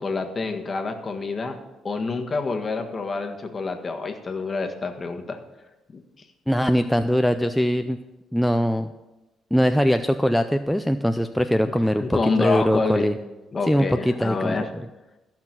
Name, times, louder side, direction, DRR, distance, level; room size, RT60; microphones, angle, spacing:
voice 1, 0.0-1.6 1.8-5.4 5.9-6.0 11.7-13.1 13.5-14.7, left 4 dB, 35° left, 5 dB, 1.5 m, -27 dB
voice 2, 6.5-8.0 8.3-8.9 9.5-13.1 13.7-14.6, equal, ahead, 7 dB, 0.4 m, -21 dB
14.5 x 6.0 x 6.1 m, 1.0 s
cardioid pair, 90°, 0 cm